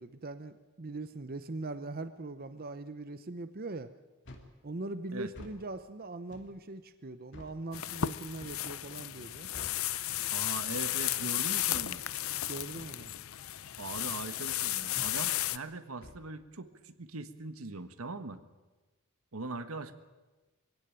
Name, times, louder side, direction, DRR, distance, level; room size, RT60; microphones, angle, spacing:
voice 1, 0.0-3.9 4.6-9.5 12.5-13.1, right 2 dB, 45° right, 11 dB, 0.8 m, -41 dB
sound 1, 4.3-4.6 5.3-5.6 6.3-6.5 7.3-7.6 8.4-8.7 9.5-9.9 10.7-11.0 11.7-12.0 12.8-13.0 13.9-14.1 15.0-15.2 16.0-16.3, left 1 dB, 55° left, 2.7 m, -49 dB
sound 2, 7.7-15.6, left 13 dB, 75° left, 0.7 m, -34 dB
voice 2, 10.3-12.0 13.8-18.4 19.3-19.9, right 3 dB, 85° right, 10 dB, 1.4 m, -41 dB
23.0 x 16.5 x 9.0 m, 1.2 s
head